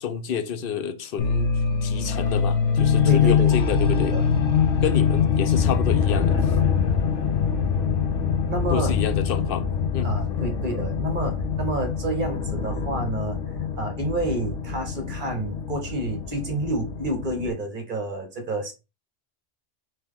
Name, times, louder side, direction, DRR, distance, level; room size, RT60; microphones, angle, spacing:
voice 1, 0.0-1.5 1.8-4.2 4.8-6.4 8.7-9.6 9.9-10.2, left 8 dB, 60° left, 0.7 m, -29 dB
sound 1, 1.2-17.5, left 6 dB, 90° left, 1.1 m, -24 dB
voice 2, 3.1-3.6 4.0-4.2 8.5-9.0 10.0-13.4 13.8-18.7, right 2 dB, 45° right, 1.1 m, -29 dB
4.3 x 3.2 x 3.5 m
omnidirectional pair, 1.2 m